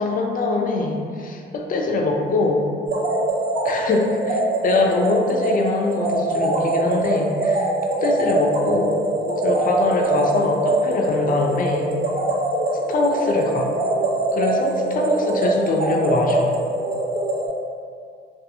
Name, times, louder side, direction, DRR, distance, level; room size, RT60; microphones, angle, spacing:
voice 1, 0.0-2.6 3.6-7.7 8.0-9.0 9.4-11.9 12.9-13.7 14.3-16.5, left 3 dB, 45° left, 1 dB, 0.4 m, -23 dB
sound 1, 2.9-17.5, right 2 dB, 40° right, 0.5 m, -23 dB
2.4 x 2.3 x 2.7 m, 2.2 s
cardioid pair, 90°, 20 cm